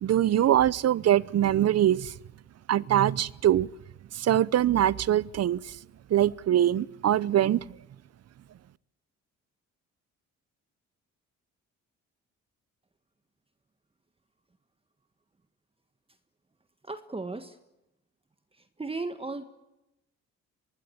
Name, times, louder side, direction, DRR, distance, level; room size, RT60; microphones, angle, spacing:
voice 1, 0.0-2.1 2.7-3.7 4.1-5.6 6.1-7.6, right 11 dB, 55° right, 0.8 m, -23 dB
voice 2, 16.9-17.5 18.8-19.4, right 3 dB, 20° right, 1.6 m, -35 dB
24.5 x 20.5 x 8.6 m
cardioid pair, 90°, 30 cm